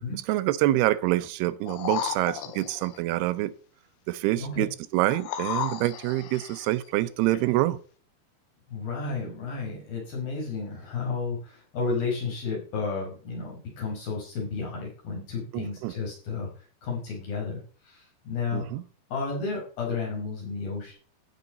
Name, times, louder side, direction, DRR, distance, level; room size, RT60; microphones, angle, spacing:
voice 1, 0.3-3.5 4.1-7.8 15.5-15.9 18.5-18.8, right 16 dB, 85° right, 2.7 m, -26 dB
sound 1, 1.7-3.0 5.1-6.7 7.3-7.4, left 9 dB, 90° left, 2.9 m, -34 dB
voice 2, 8.7-16.5 16.8-18.7 19.1-20.9, left 4 dB, 65° left, 6.8 m, -32 dB
15.0 x 6.5 x 4.0 m
omnidirectional pair, 4.5 m